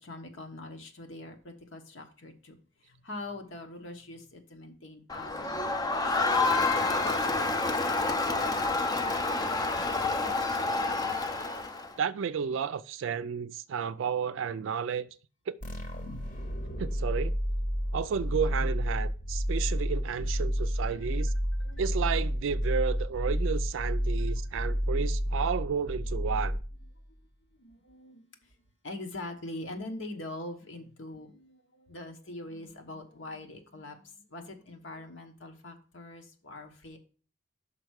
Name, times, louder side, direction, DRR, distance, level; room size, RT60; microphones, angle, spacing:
voice 1, 0.0-8.6 10.7-11.1 20.3-20.6 20.9-21.9 25.0-25.1 26.2-28.6 28.8-37.0, left 2 dB, 75° left, 1.2 m, -44 dB
Crowd, 5.1-11.9, left 3 dB, 20° left, 0.5 m, -28 dB
voice 2, 12.0-15.1 15.5-15.6 16.8-17.4 17.9-21.3 21.8-26.6, right 6 dB, 75° right, 0.3 m, -32 dB
sound 1, 15.6-27.1, equal, 45° left, 1.1 m, -30 dB
5.9 x 4.6 x 6.3 m
head